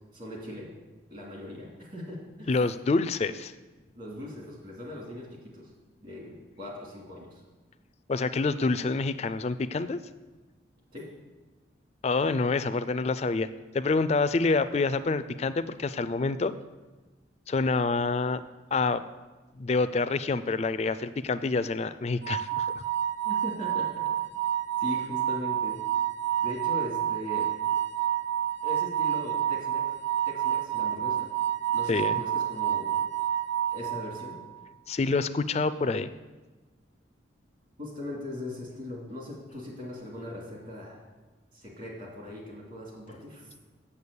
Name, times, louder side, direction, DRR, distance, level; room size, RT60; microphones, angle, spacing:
voice 1, 0.1-0.7 1.1-2.5 3.9-5.7 6.0-7.4 10.9-11.1 23.2-23.9 24.8-25.8 26.4-27.6 28.6-29.9 30.2-31.3 31.7-33.0 33.7-34.4 37.8-41.0 41.5-43.5, left 1 dB, 45° right, -2 dB, 2.7 m, -40 dB
voice 2, 2.5-3.5 8.1-10.0 12.0-13.5 13.7-16.5 17.5-18.4 18.7-19.0 19.6-22.8 31.9-32.2 34.9-36.1, left 3 dB, 35° left, 13 dB, 0.3 m, -27 dB
sound 1, 22.2-34.5, right 10 dB, 70° right, 0.5 m, -29 dB
8.1 x 7.2 x 7.0 m, 1.2 s
head